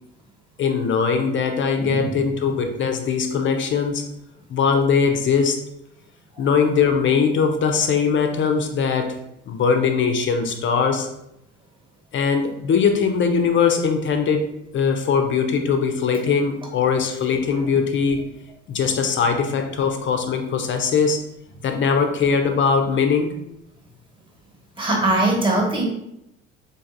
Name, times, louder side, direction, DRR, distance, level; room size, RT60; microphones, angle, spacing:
voice 1, 0.6-4.0 4.5-5.6 6.4-9.2 9.5-11.1 12.1-18.2 18.7-21.2 21.6-23.3, left 6 dB, 35° left, 6 dB, 0.6 m, -21 dB
voice 2, 1.8-2.2 24.8-25.8, right 2 dB, 15° right, -2 dB, 1.2 m, -21 dB
3.9 x 2.5 x 2.5 m, 0.82 s
figure-of-eight pair, 60°, 36 cm